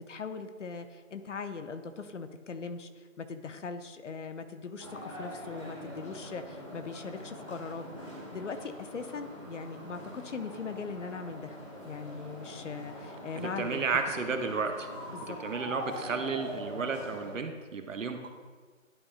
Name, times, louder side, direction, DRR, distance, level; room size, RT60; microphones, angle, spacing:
voice 1, 0.0-7.9 8.3-11.6 11.8-13.8 15.1-15.4, left 4 dB, 65° left, 9 dB, 0.7 m, -40 dB
sound 1, 4.8-17.3, equal, 25° left, 1.0 m, -43 dB
voice 2, 13.4-14.9 15.2-18.3, right 4 dB, 70° right, 6 dB, 0.9 m, -33 dB
11.0 x 4.2 x 2.4 m, 1.5 s
hypercardioid pair, 170°, 40 cm